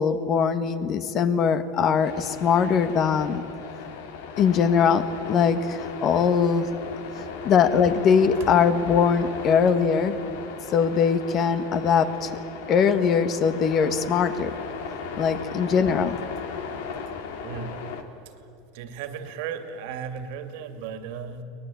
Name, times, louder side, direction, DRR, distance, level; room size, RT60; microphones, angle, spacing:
voice 1, 0.0-3.4 4.4-6.7 7.4-10.2 10.7-12.4 12.7-14.5 15.2-16.2, left 6 dB, 40° left, 11 dB, 1.6 m, -21 dB
sound 1, 2.0-18.0, left 6 dB, 80° left, 2.3 m, -37 dB
voice 2, 7.1-7.5 17.4-17.9 18.7-21.4, right 7 dB, 70° right, 8 dB, 2.5 m, -36 dB
23.5 x 19.0 x 8.6 m, 2.9 s
supercardioid pair, 125°, 0 cm